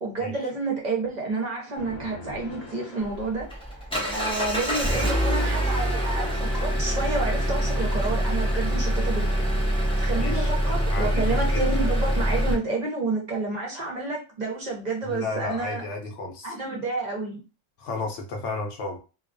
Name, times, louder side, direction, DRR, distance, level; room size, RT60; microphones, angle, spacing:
voice 1, 0.0-3.5 4.1-9.3 10.0-15.8 16.4-17.4, right 3 dB, 45° right, -2 dB, 0.6 m, -29 dB
sound 1, 1.7-4.1, left 1 dB, 40° left, 0.7 m, -42 dB
Engine, 3.0-12.5, equal, 5° left, 0.4 m, -25 dB
voice 2, 10.2-11.7 15.1-16.6 17.8-19.0, left 3 dB, 70° left, 2 dB, 0.8 m, -33 dB
2.3 x 2.2 x 2.4 m, 0.33 s
omnidirectional pair, 1.3 m